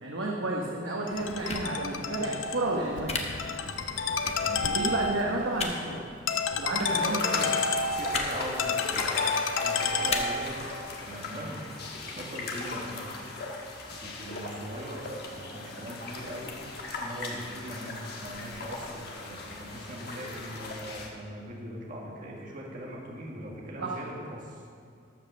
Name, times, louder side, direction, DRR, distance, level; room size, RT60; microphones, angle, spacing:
voice 1, 0.0-3.2 4.7-6.1 6.5-7.6 23.8-24.0, right 2 dB, 85° right, -2 dB, 1.1 m, -31 dB
Ringtone, 1.1-10.6, left 4 dB, 80° left, 0.6 m, -31 dB
sound 1, 1.5-1.6 3.1-3.2 4.2-4.3 5.5-5.7 6.8-6.9 8.1-8.3 8.8-9.0 10.1-10.2, left 5 dB, 35° left, 0.9 m, -32 dB
voice 2, 4.4-4.8 8.0-9.3 9.6-11.6 12.0-13.2 13.9-24.6, equal, 45° right, -3 dB, 1.7 m, -41 dB
sound 2, 6.9-21.1, left 3 dB, 55° left, 1.4 m, -37 dB
13.0 x 5.3 x 6.8 m, 2.2 s
head